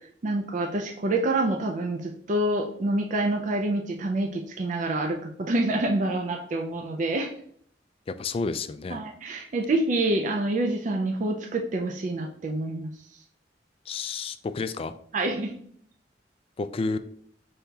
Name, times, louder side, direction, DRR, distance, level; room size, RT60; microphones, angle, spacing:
voice 1, 0.2-7.3 8.9-12.9 15.1-15.5, right 2 dB, 45° right, 3 dB, 0.4 m, -27 dB
voice 2, 8.1-9.0 13.9-14.9 16.6-17.0, left 4 dB, 30° left, 11 dB, 0.3 m, -30 dB
5.4 x 3.4 x 2.8 m, 0.64 s
head